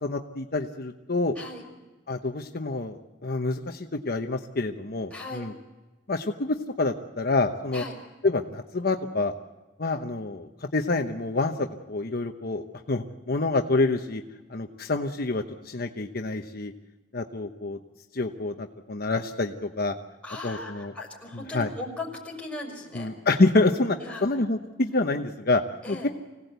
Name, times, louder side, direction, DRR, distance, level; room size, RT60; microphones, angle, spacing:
voice 1, 0.0-1.3 2.1-5.5 6.1-7.8 8.2-9.3 9.8-14.2 14.5-16.7 17.1-17.8 18.1-19.9 20.4-20.9 21.3-21.7 22.9-25.6 25.9-26.0, left 2 dB, 55° left, 5 dB, 1.0 m, -27 dB
voice 2, 5.1-5.5 7.7-7.9 20.2-23.1 24.0-24.2 25.8-26.1, left 2 dB, 5° left, -2 dB, 5.6 m, -38 dB
25.5 x 17.5 x 8.2 m, 1.2 s
head